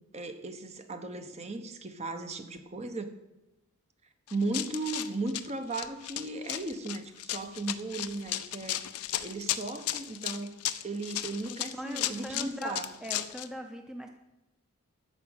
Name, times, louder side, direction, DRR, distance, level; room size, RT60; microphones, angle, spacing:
voice 1, 0.1-3.2 4.3-8.9 9.2-10.6 10.8-12.9, right 2 dB, 30° right, 8 dB, 0.9 m, -36 dB
Run, 4.3-13.5, left 13 dB, 85° left, 0.7 m, -35 dB
voice 2, 11.5-14.1, equal, 5° right, 4 dB, 0.7 m, -40 dB
13.5 x 4.9 x 9.0 m, 0.99 s
head